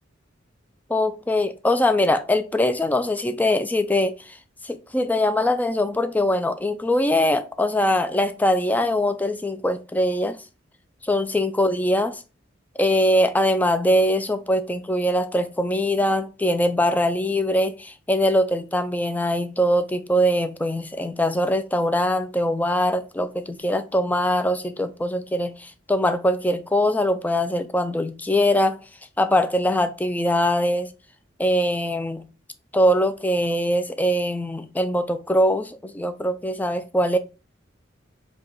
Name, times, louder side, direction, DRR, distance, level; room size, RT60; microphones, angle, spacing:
voice 1, 0.9-4.4 4.6-10.4 11.0-12.2 12.8-28.8 29.2-30.9 31.4-32.2 32.7-37.2, left 1 dB, 10° left, 0.3 m, -22 dB
4.8 x 2.2 x 4.5 m
head